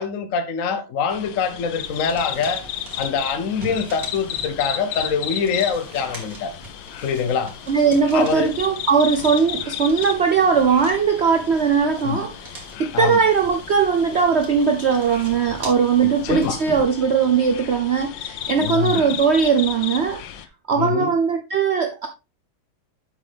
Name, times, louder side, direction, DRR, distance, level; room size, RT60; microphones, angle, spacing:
voice 1, 0.0-2.6 3.0-6.5 7.0-7.5 8.1-8.5 12.0-12.2 12.9-13.2 16.0-16.6 18.6-19.0 20.7-21.1, left 6 dB, 55° left, 0.9 m, -24 dB
sound 1, 1.1-20.5, left 10 dB, 70° left, 1.4 m, -34 dB
sound 2, 1.8-16.8, right 3 dB, 45° right, 2.8 m, -42 dB
voice 2, 7.7-12.3 12.8-20.2 20.7-22.1, right 6 dB, 70° right, 0.6 m, -19 dB
7.9 x 6.5 x 3.4 m
omnidirectional pair, 2.2 m